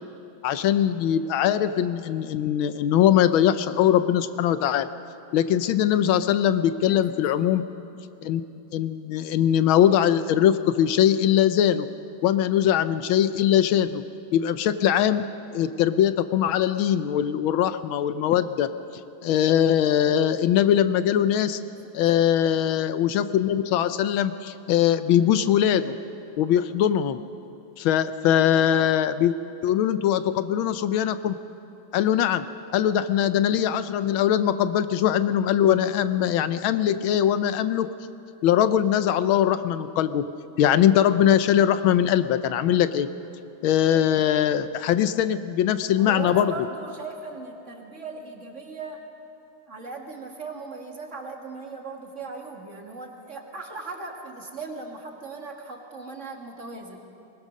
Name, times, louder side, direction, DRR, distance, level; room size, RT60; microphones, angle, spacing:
voice 1, 0.4-4.9 5.3-7.7 8.2-8.4 8.7-11.9 12.2-14.0 14.3-15.3 15.5-18.7 19.2-21.6 21.9-26.0 26.4-27.2 27.8-29.3 29.6-31.4 31.9-32.4 32.7-37.9 38.4-40.3 40.6-43.1 43.6-46.5, left 10 dB, 80° left, 12 dB, 1.5 m, -21 dB
voice 2, 7.4-7.7 21.6-22.1 46.0-49.0 49.7-57.0, right 3 dB, 35° right, 2 dB, 2.1 m, -38 dB
22.0 x 20.0 x 6.4 m, 2.8 s
omnidirectional pair, 2.2 m